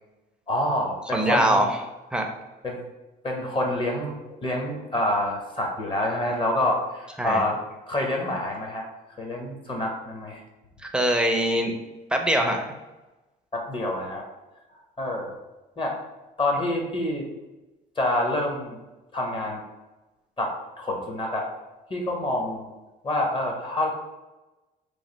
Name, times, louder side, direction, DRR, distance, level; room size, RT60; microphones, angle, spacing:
voice 1, 0.5-1.6 2.6-2.8 3.2-7.6 7.9-8.8 9.2-10.4 13.5-14.2 15.0-15.3 15.8-16.0 16.4-17.3 18.0-18.8 19.1-19.6 20.4-21.5 21.9-22.7 23.0-23.9, left 1 dB, 30° left, 1 dB, 0.8 m, -27 dB
voice 2, 1.1-1.8 2.1-2.3 7.2-7.4 10.8-11.7 12.1-12.6, right 1 dB, 5° right, 3 dB, 0.5 m, -22 dB
3.1 x 2.4 x 3.9 m, 1.1 s
cardioid pair, 110°, 17 cm